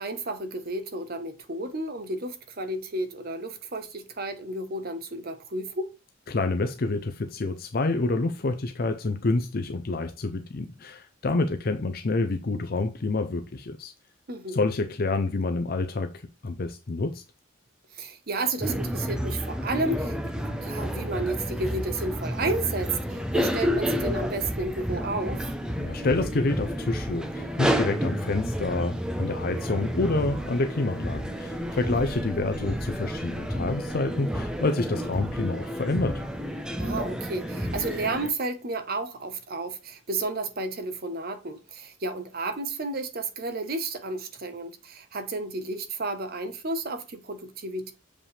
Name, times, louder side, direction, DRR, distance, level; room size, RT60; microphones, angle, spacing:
voice 1, 0.0-5.9 14.3-14.6 18.0-20.2 20.6-25.4 31.8-32.0 36.8-47.9, right 2 dB, 50° right, 1.0 m, -32 dB
voice 2, 6.3-13.9 14.5-16.1 16.4-17.2 25.8-36.2, left 3 dB, 45° left, 0.5 m, -28 dB
sound 1, 18.6-38.3, equal, 5° right, 0.7 m, -30 dB
7.3 x 5.2 x 3.3 m
head